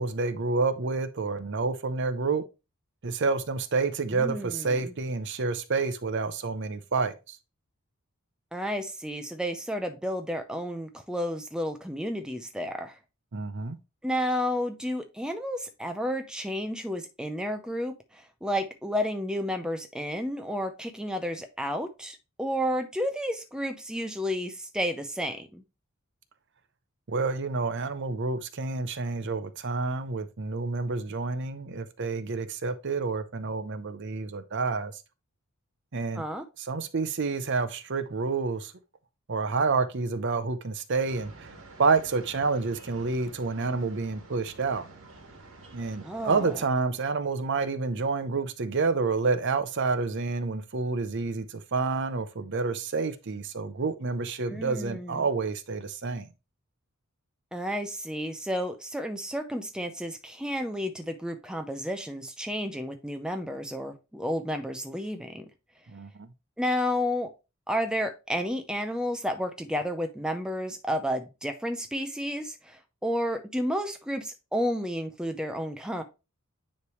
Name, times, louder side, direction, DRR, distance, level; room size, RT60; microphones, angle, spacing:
voice 1, 0.0-2.4 3.0-7.4 13.3-13.8 27.1-34.9 35.9-36.2 36.6-38.7 39.3-41.5 41.8-44.9 45.7-56.3 65.9-66.3, right 4 dB, 55° right, 0.6 m, -29 dB
voice 2, 4.1-4.9 8.5-13.0 14.0-25.6 36.1-36.5 46.0-46.6 54.5-55.3 57.5-65.5 66.6-67.3 67.7-76.0, equal, 5° right, 0.5 m, -31 dB
sound 1, 41.1-46.6, right 3 dB, 70° right, 1.5 m, -49 dB
9.7 x 3.3 x 3.1 m
head